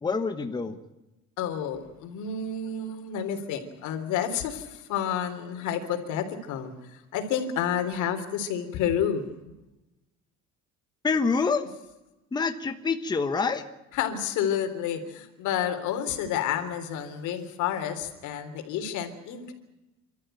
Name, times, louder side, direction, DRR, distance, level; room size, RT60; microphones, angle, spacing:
voice 1, 0.0-0.8 11.0-11.6 12.3-13.6, left 4 dB, 15° left, 7 dB, 1.1 m, -26 dB
voice 2, 1.4-9.3 13.9-19.5, left 8 dB, 80° left, 8 dB, 3.6 m, -30 dB
29.5 x 13.5 x 9.1 m, 1.0 s
cardioid pair, 160°, 30 cm